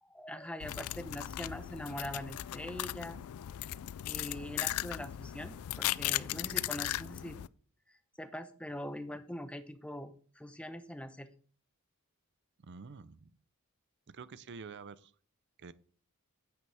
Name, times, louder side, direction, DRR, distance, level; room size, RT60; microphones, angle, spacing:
voice 1, 0.1-3.2 4.0-7.4 8.2-11.3, left 1 dB, 5° left, 0.8 m, -43 dB
sound 1, 0.6-7.5, left 14 dB, 70° left, 0.3 m, -37 dB
voice 2, 12.6-13.3 14.1-15.1 15.6-15.7, right 5 dB, 50° right, 0.5 m, -48 dB
9.4 x 8.1 x 3.4 m
head